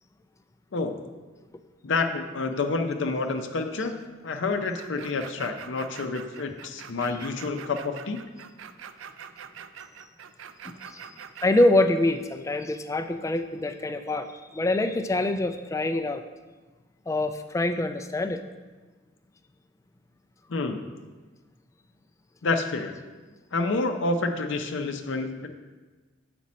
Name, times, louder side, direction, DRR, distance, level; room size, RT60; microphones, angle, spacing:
voice 1, 1.8-8.2 20.5-20.8 22.4-23.0 23.5-25.5, left 3 dB, 70° left, 6 dB, 0.5 m, -28 dB
sound 1, 4.8-11.9, right 8 dB, 75° right, 0.4 m, -44 dB
voice 2, 11.4-16.2 17.1-18.4, left 2 dB, 15° left, 8 dB, 0.3 m, -25 dB
7.4 x 5.2 x 4.1 m, 1.3 s
head